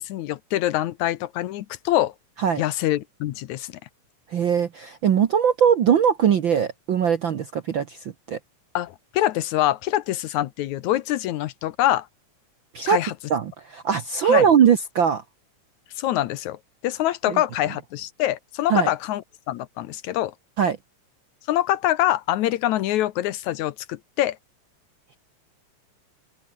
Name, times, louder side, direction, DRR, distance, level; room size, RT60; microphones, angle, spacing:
voice 1, 0.0-2.1 2.6-3.7 8.7-12.1 12.9-13.1 14.2-14.5 16.0-20.3 21.5-24.4, left 14 dB, 75° left, 2.1 m, -25 dB
voice 2, 4.3-8.4 12.7-13.0 13.3-15.2 17.3-17.4 18.7-18.9 20.6-20.8, right 8 dB, 60° right, 1.2 m, -21 dB
open air
omnidirectional pair, 3.6 m